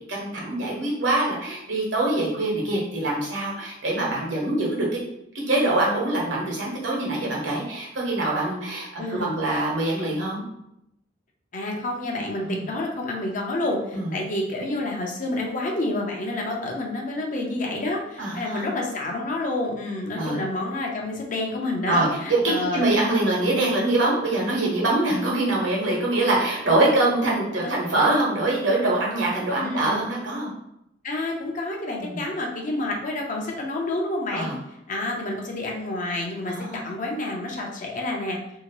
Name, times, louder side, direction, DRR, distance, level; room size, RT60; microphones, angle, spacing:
voice 1, 0.1-5.0 5.5-10.4 12.4-12.7 13.9-14.1 18.2-18.7 20.1-20.4 21.9-30.5 32.0-32.2 34.3-34.5 36.4-36.9, right 2 dB, 70° right, -3 dB, 1.1 m, -24 dB
voice 2, 9.0-9.4 11.5-22.8 23.4-23.6 27.5-27.8 29.5-30.0 31.0-34.5 34.9-38.4, left 2 dB, 45° left, 0 dB, 0.6 m, -29 dB
3.0 x 2.8 x 2.9 m, 0.81 s
head